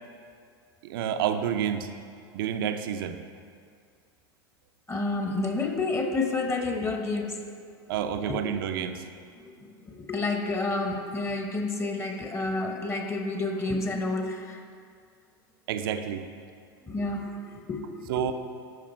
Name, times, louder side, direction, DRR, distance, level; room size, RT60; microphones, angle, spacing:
voice 1, 0.8-1.9 2.3-3.2 7.9-9.1 15.7-16.3 18.1-18.3, right 9 dB, 65° right, 8 dB, 0.6 m, -29 dB
voice 2, 4.9-7.5 8.1-8.6 9.4-14.6 16.8-18.3, left 3 dB, 20° left, 4 dB, 1.1 m, -30 dB
12.5 x 5.0 x 4.4 m, 2.2 s
hypercardioid pair, 90°, 13 cm